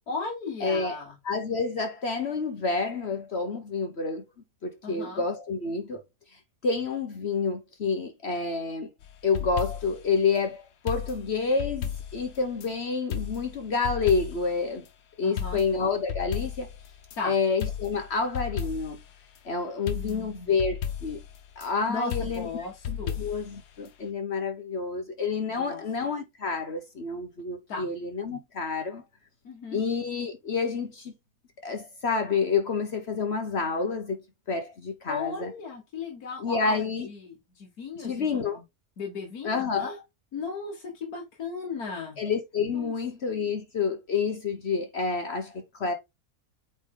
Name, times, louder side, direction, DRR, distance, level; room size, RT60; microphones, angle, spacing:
voice 1, 0.1-1.2 4.8-5.2 15.2-15.6 17.2-17.4 19.9-20.5 21.9-23.2 25.5-25.8 27.7-27.9 29.4-29.8 35.1-38.6 39.0-40.0 40.3-42.2 42.7-42.9, left 4 dB, 70° left, 2.0 m, -36 dB
voice 2, 0.6-1.0 1.2-4.3 4.6-6.0 6.6-8.9 9.2-14.8 15.2-16.7 17.2-19.0 19.4-21.2 21.6-22.5 22.9-29.0 29.7-31.1 31.6-34.2 34.5-35.5 36.4-37.1 38.0-38.6 39.4-40.0 42.2-45.9, left 4 dB, 50° left, 1.0 m, -29 dB
sound 1, 9.0-10.1 10.9-12.7 13.1-14.6 14.9-15.0 15.4-17.2 17.6-19.1 19.4-19.5 19.9-21.7 22.1-23.6 23.9-24.0, left 9 dB, 85° left, 1.5 m, -34 dB
8.3 x 3.3 x 3.7 m
omnidirectional pair, 1.7 m